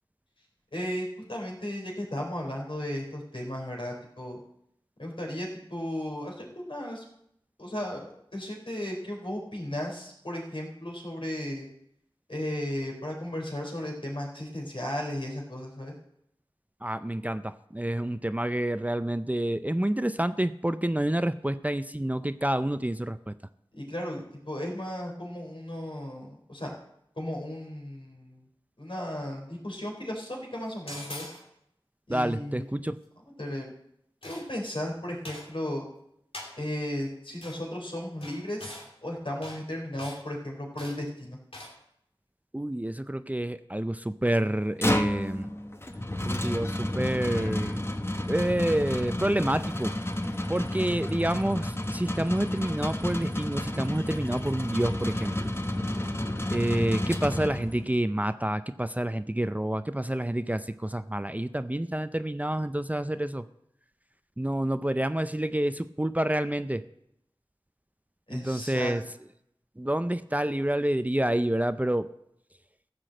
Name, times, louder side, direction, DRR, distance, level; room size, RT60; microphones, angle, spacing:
voice 1, 0.7-4.4 5.0-7.0 7.6-8.1 8.3-11.7 12.3-15.9 23.7-26.7 27.2-28.4 28.8-31.3 32.1-32.7 33.4-33.7 34.2-35.9 36.6-41.4 68.3-68.9, left 1 dB, 70° left, -1 dB, 4.1 m, -35 dB
voice 2, 16.8-23.3 32.1-33.0 42.5-45.5 46.2-47.8 48.3-49.9 50.5-55.5 56.5-63.4 64.4-66.8 68.3-69.0 69.8-72.1, right 1 dB, 15° right, 11 dB, 0.5 m, -28 dB
sound 1, 30.9-31.4 34.2-34.7 35.2-35.5 36.3-36.5 37.4-37.6 38.2-38.9 39.4-39.6 40.0-40.2 40.8-41.0 41.5-41.7, left 1 dB, 90° left, 2.9 m, -42 dB
sound 2, 44.5-58.0, left 1 dB, 25° left, 1.0 m, -31 dB
15.0 x 6.1 x 7.7 m, 0.76 s
wide cardioid pair, 40°, 9 cm